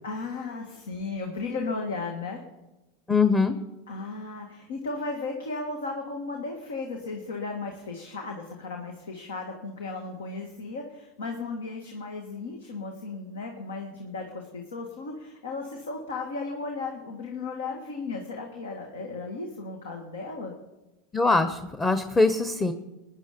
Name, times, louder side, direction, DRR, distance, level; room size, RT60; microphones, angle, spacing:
voice 1, 0.0-2.4 3.9-20.5, left 3 dB, 85° left, 2 dB, 1.8 m, -35 dB
voice 2, 3.1-3.6 21.1-22.7, left 3 dB, 15° left, 9 dB, 0.9 m, -22 dB
18.5 x 10.5 x 5.2 m, 1.0 s
hypercardioid pair, 95°, 0 cm